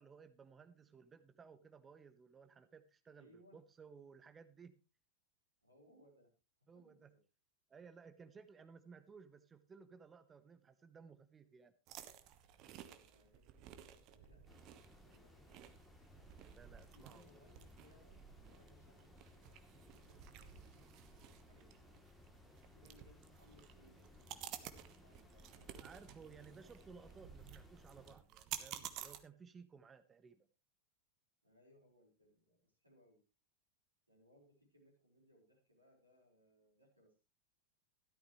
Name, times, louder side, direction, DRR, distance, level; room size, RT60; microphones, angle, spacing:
voice 1, 0.0-4.8 6.7-7.1 7.7-11.7 16.5-17.4 25.7-30.5, right 5 dB, 20° right, 12 dB, 0.9 m, -58 dB
voice 2, 3.1-3.6 5.6-6.3 6.6-7.2 12.7-14.6 15.0-15.5 16.9-22.1 22.7-26.2 26.5-26.9 31.4-33.2 34.1-37.1, equal, 80° right, 0 dB, 4.7 m, -69 dB
sound 1, 11.9-29.2, right 11 dB, 40° right, 1.3 m, -53 dB
sound 2, 14.5-28.2, left 1 dB, ahead, 2.9 m, -62 dB
14.0 x 12.5 x 3.2 m, 0.31 s
figure-of-eight pair, 90°, 0 cm